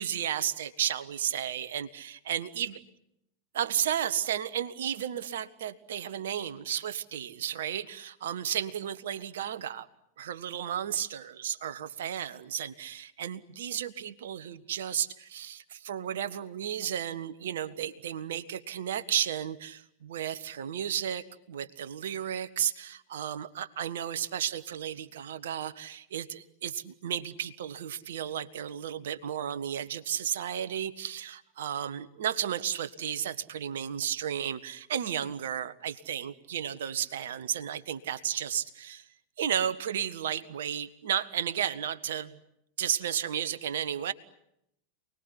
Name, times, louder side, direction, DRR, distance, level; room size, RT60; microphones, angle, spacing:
voice 1, 0.0-2.7 3.5-9.9 10.2-39.1 39.4-42.4 42.8-44.1, right 9 dB, 60° right, 13 dB, 1.5 m, -33 dB
29.0 x 20.5 x 10.0 m, 0.80 s
figure-of-eight pair, 90°, 0 cm